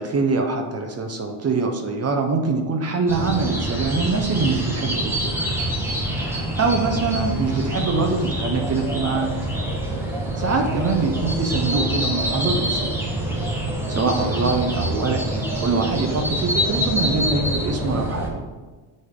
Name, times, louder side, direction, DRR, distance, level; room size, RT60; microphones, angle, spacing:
voice 1, 0.0-5.3 6.2-9.3 10.4-12.9 13.9-18.4, right 4 dB, 30° right, 4 dB, 0.8 m, -24 dB
sound 1, 3.1-18.3, right 1 dB, 5° right, 1.4 m, -26 dB
9.6 x 4.4 x 3.6 m, 1.3 s
cardioid pair, 130°, 49 cm